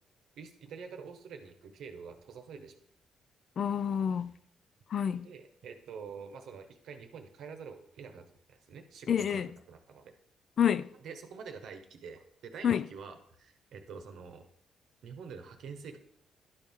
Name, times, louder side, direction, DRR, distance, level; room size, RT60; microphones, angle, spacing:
voice 1, 0.4-2.7 3.9-4.2 5.2-10.1 11.0-14.5 15.0-16.0, right 6 dB, 75° right, 1.0 m, -47 dB
voice 2, 3.6-4.3 4.9-5.3 9.1-9.5 10.6-10.9 12.6-12.8, left 8 dB, 55° left, 0.3 m, -28 dB
11.5 x 4.4 x 3.6 m
cardioid pair, 90°, 0 cm